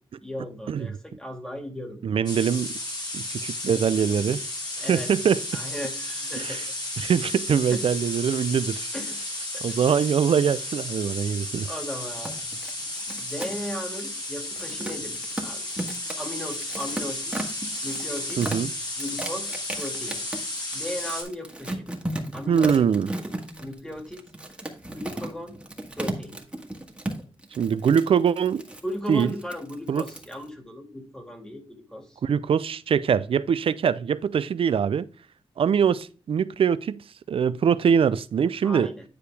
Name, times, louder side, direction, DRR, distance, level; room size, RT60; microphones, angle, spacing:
voice 1, 0.2-2.0 4.8-5.1 5.5-6.7 7.7-7.8 8.9-9.2 9.5-9.8 11.7-12.4 13.1-15.7 16.2-17.3 17.8-18.4 19.0-20.2 20.7-21.8 22.3-22.9 23.6-24.2 24.9-25.6 25.9-26.4 28.8-32.2 38.6-39.0, equal, 5° left, 2.2 m, -36 dB
voice 2, 2.0-2.7 3.1-4.4 4.9-5.4 6.4-6.7 7.0-8.9 9.6-11.7 18.4-18.7 22.5-23.1 27.6-28.6 29.1-29.3 29.9-30.0 32.2-35.1 35.6-37.0 37.3-38.9, right 7 dB, 65° right, 0.5 m, -23 dB
sound 1, 2.3-21.2, left 1 dB, 45° left, 3.0 m, -33 dB
sound 2, 12.1-30.4, right 1 dB, 10° right, 1.6 m, -35 dB
10.0 x 4.8 x 3.4 m
wide cardioid pair, 95°, 10 cm